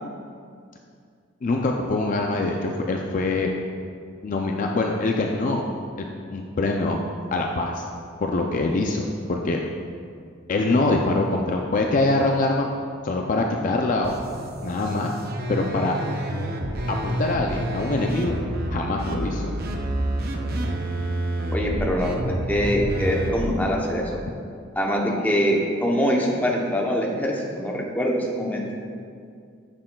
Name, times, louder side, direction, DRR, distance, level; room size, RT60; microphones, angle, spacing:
voice 1, 1.4-3.5 4.2-5.6 6.3-7.0 7.3-7.8 8.2-9.6 10.5-12.7 13.0-14.2 14.6-15.1 15.5-16.0 16.9-18.4 18.7-19.5, left 2 dB, 40° left, 2 dB, 0.4 m, -24 dB
sound 1, 14.0-23.5, right 1 dB, 50° right, 0.6 m, -28 dB
voice 2, 21.5-24.2 24.7-28.6, equal, 10° left, -1 dB, 0.7 m, -24 dB
9.5 x 6.4 x 2.2 m, 2.2 s
head